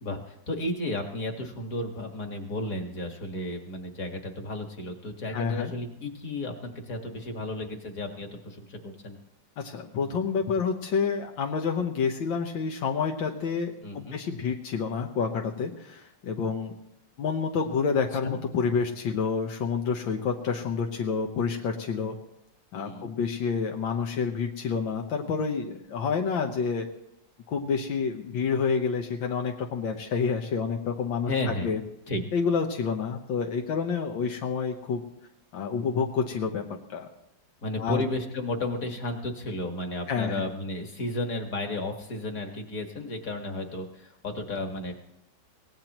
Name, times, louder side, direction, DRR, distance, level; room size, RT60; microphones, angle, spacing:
voice 1, 0.0-9.2 13.8-14.2 18.2-18.3 22.7-23.1 31.3-31.7 32.1-32.2 37.6-45.0, left 1 dB, 50° left, 3 dB, 2.1 m, -33 dB
voice 2, 5.3-5.7 9.6-16.7 17.2-22.2 22.7-26.9 27.5-31.8 32.3-35.0 35.5-36.6 36.9-37.1 37.8-38.1 40.1-40.5, left 5 dB, 85° left, 2 dB, 1.8 m, -28 dB
24.0 x 18.0 x 3.0 m, 0.82 s
omnidirectional pair, 2.0 m